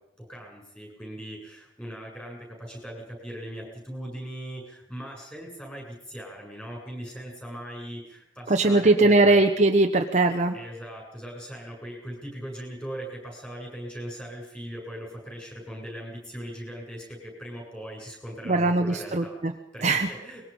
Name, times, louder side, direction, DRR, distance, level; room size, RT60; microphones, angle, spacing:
voice 1, 0.2-9.4 10.5-19.4 19.7-20.4, equal, 5° left, 0 dB, 7.8 m, -39 dB
voice 2, 8.5-10.6 18.4-19.5 19.8-20.1, right 2 dB, 35° right, 4 dB, 1.0 m, -20 dB
23.5 x 21.5 x 5.5 m, 0.83 s
head